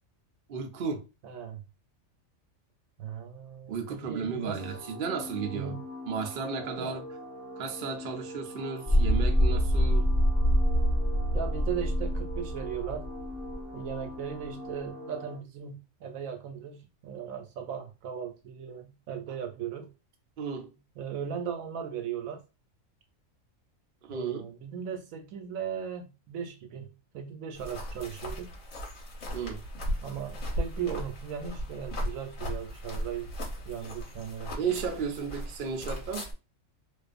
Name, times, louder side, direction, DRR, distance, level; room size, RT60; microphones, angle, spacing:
voice 1, 0.5-1.1 3.7-5.8 6.1-7.1 7.6-10.1 20.4-20.7 24.0-24.5 29.3-29.6 34.5-36.3, right 6 dB, 55° right, 0.6 m, -34 dB
voice 2, 1.2-1.6 3.0-4.6 5.5-5.9 6.8-6.9 11.3-13.1 13.7-19.9 21.0-22.4 24.1-28.5 30.0-33.3 33.7-34.7, right 8 dB, 80° right, 1.0 m, -37 dB
sound 1, 4.6-15.4, left 1 dB, 40° left, 1.2 m, -42 dB
sound 2, 8.9-13.6 13.8-13.9, equal, 15° right, 1.3 m, -25 dB
sound 3, 27.5-36.3, equal, 70° left, 1.2 m, -37 dB
2.4 x 2.4 x 2.4 m
omnidirectional pair, 1.4 m